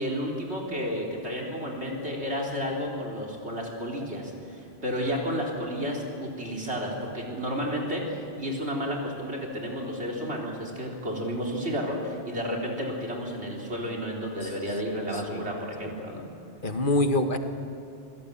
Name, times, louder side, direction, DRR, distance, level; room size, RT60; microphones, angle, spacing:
voice 1, 0.0-16.3, equal, 85° right, -1 dB, 4.2 m, -32 dB
voice 2, 16.6-17.4, left 1 dB, 50° left, 7 dB, 1.5 m, -25 dB
27.5 x 16.5 x 8.8 m, 2.6 s
omnidirectional pair, 1.1 m